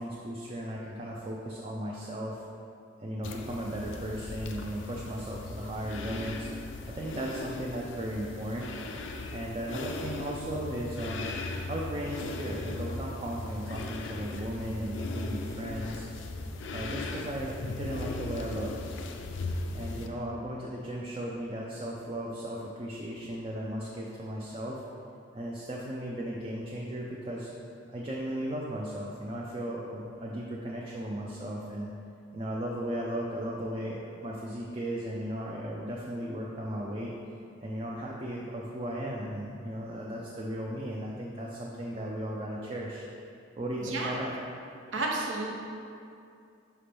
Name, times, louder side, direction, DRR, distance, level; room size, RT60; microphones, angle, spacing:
voice 1, 0.0-2.4 3.0-6.5 6.8-8.7 9.3-11.3 11.6-16.1 16.7-18.7 19.7-24.8 25.3-27.5 27.9-31.9 32.3-37.1 37.6-43.1 43.6-44.3, right 1 dB, 30° right, -3 dB, 0.5 m, -36 dB
sound 1, 3.2-20.1, left 2 dB, 70° left, 0.4 m, -38 dB
voice 2, 43.9-44.2 44.9-45.6, right 2 dB, 75° right, -1 dB, 0.9 m, -31 dB
5.6 x 5.1 x 3.4 m, 2.5 s
head